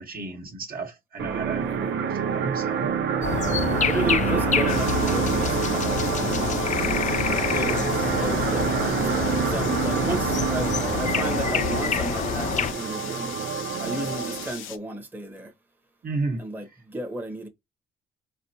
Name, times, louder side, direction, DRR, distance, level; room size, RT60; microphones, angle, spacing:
voice 1, 0.0-2.9 7.0-7.1 16.0-16.4, right 3 dB, 45° right, 1.4 m, -33 dB
sound 1, 1.2-14.5, right 7 dB, 70° right, 0.7 m, -27 dB
sound 2, 3.2-12.7, left 8 dB, 40° left, 0.4 m, -27 dB
voice 2, 3.6-6.7 7.5-13.4 13.8-15.5 16.4-17.5, right 1 dB, 10° right, 1.1 m, -33 dB
sound 3, 4.7-14.8, left 10 dB, 85° left, 0.7 m, -39 dB
4.3 x 4.1 x 2.8 m
cardioid pair, 90°, 20 cm